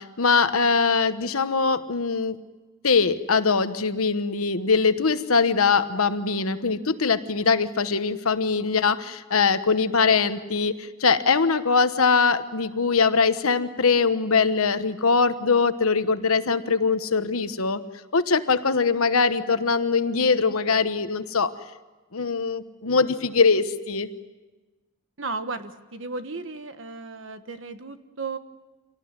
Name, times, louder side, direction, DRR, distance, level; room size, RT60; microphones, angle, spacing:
voice 1, 0.0-2.4 2.8-17.8 18.1-21.5 22.1-24.1, left 4 dB, 85° left, 10 dB, 1.2 m, -22 dB
voice 2, 25.2-28.4, right 3 dB, 60° right, 9 dB, 1.4 m, -34 dB
26.0 x 18.5 x 9.7 m, 1.2 s
head